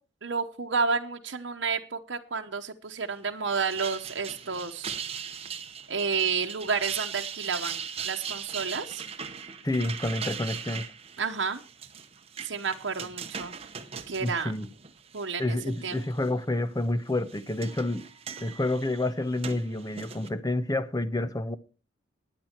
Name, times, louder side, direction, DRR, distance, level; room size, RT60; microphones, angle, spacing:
voice 1, 0.2-4.9 5.9-9.0 11.2-11.6 12.4-13.5 14.1-14.5 15.1-15.6 15.8-16.0, right 5 dB, 70° right, 1.0 m, -30 dB
sound 1, 3.5-15.3 15.7-16.3 17.1-20.3, right 7 dB, 30° right, 1.0 m, -39 dB
voice 2, 9.6-10.9 14.2-14.7 15.4-18.1 18.4-21.6, left 1 dB, 20° left, 0.8 m, -29 dB
15.5 x 10.0 x 4.5 m
head